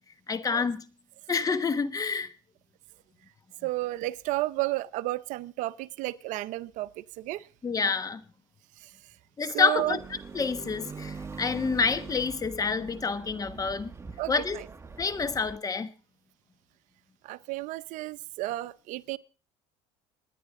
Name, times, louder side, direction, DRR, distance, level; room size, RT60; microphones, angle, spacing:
voice 1, 0.3-0.8 1.3-2.3 7.6-8.2 9.4-10.0 10.3-13.9 14.3-14.6 15.0-15.9, left 5 dB, 25° left, 1.3 m, -28 dB
voice 2, 3.6-6.9 7.2-7.4 8.8-8.9 9.5-10.0 14.2-14.6 17.2-19.2, right 18 dB, 65° right, 0.6 m, -32 dB
sound 1, 9.8-15.6, right 4 dB, 20° right, 1.1 m, -43 dB
27.0 x 10.0 x 3.7 m
supercardioid pair, 100°, 14 cm